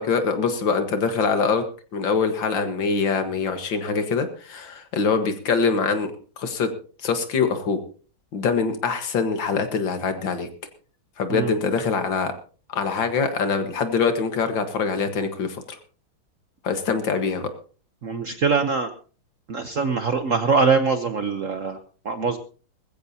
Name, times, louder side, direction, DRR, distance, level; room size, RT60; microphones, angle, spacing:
voice 1, 0.0-1.6 1.9-6.7 7.0-7.8 8.3-10.5 11.2-12.3 12.7-15.8 16.6-17.5, left 5 dB, 65° left, 8 dB, 2.2 m, -24 dB
voice 2, 18.0-18.9 19.5-21.8 22.0-22.4, right 5 dB, 50° right, 9 dB, 1.0 m, -22 dB
20.0 x 15.0 x 2.8 m, 0.38 s
omnidirectional pair, 2.3 m